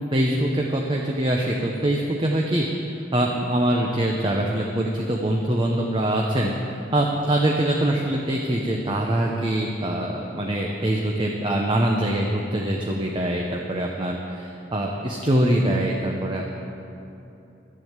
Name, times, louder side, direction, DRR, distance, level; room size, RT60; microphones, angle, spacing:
voice 1, 0.1-2.8 3.1-6.5 6.9-16.5, right 1 dB, 25° right, 0 dB, 0.8 m, -23 dB
12.0 x 7.6 x 8.0 m, 2.9 s
head